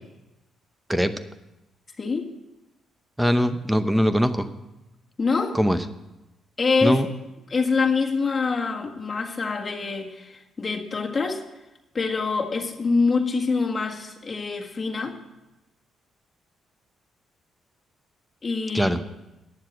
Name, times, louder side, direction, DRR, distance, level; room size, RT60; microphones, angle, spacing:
voice 1, 2.0-2.3 5.2-5.6 6.6-7.0 7.5-11.4 11.9-15.2 18.4-18.9, left 4 dB, 35° left, 1 dB, 1.7 m, -25 dB
voice 2, 3.2-4.5 5.5-5.8 6.8-7.1 18.7-19.0, equal, 5° right, 11 dB, 0.8 m, -21 dB
9.9 x 7.3 x 9.0 m, 0.98 s
cardioid pair, 90°, 0 cm